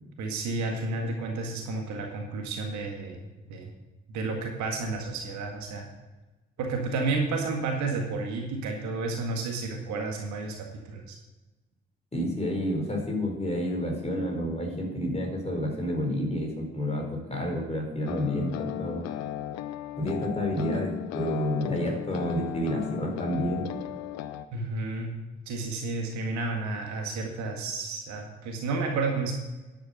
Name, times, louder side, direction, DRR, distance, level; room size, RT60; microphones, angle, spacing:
voice 1, 0.2-3.7 4.1-5.9 6.6-10.6 10.9-11.2 24.5-25.1 25.5-29.3, right 3 dB, 60° right, 2 dB, 1.9 m, -31 dB
voice 2, 12.1-19.1 20.0-23.7, equal, 20° left, 0 dB, 4.6 m, -29 dB
sound 1, 18.0-24.5, left 12 dB, 55° left, 0.8 m, -36 dB
10.5 x 8.5 x 6.7 m, 1.1 s
figure-of-eight pair, 40°, 32 cm